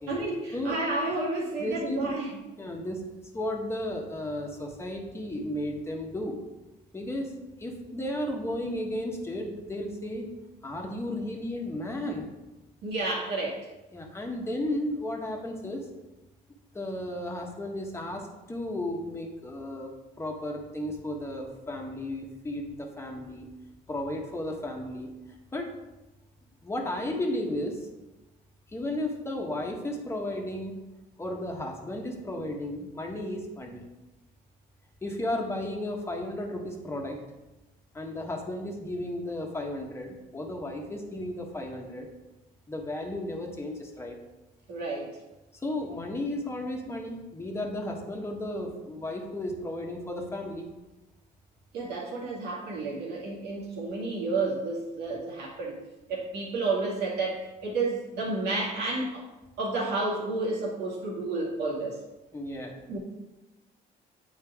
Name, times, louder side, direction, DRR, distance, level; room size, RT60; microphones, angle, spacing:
voice 1, 0.1-2.4 12.8-13.7 44.7-45.1 51.7-55.8 56.1-59.3 59.6-62.0 62.9-63.0, right 3 dB, 80° right, -3 dB, 2.2 m, -31 dB
voice 2, 1.6-2.1 2.6-3.1 3.3-6.4 6.9-7.3 7.6-10.3 10.6-12.3 13.9-15.8 16.7-19.9 20.2-23.5 23.9-25.1 25.5-25.7 26.6-27.9 28.7-30.8 31.2-33.8 35.0-37.2 37.9-42.1 42.7-44.2 45.6-50.7 62.3-62.8, left 1 dB, 15° left, 1 dB, 1.3 m, -34 dB
8.7 x 4.5 x 3.6 m, 1.0 s
cardioid pair, 110°, 17 cm